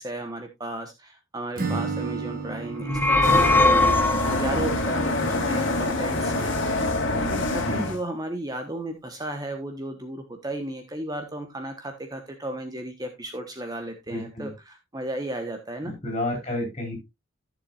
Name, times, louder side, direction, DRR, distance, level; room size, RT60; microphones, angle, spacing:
voice 1, 0.0-6.6 7.1-15.9, right 1 dB, 20° right, 5 dB, 1.1 m, -34 dB
Acoustic guitar / Strum, 1.6-5.5, right 4 dB, 45° right, 2.0 m, -34 dB
sound 1, 2.7-4.7, left 2 dB, 10° left, 0.9 m, -20 dB
sound 2, 3.2-8.0, left 2 dB, 70° left, 2.1 m, -25 dB
voice 2, 4.2-4.6 7.6-7.9 14.1-14.5 15.8-17.0, left 1 dB, 30° left, 2 dB, 4.7 m, -31 dB
14.5 x 7.2 x 2.5 m, 0.19 s
head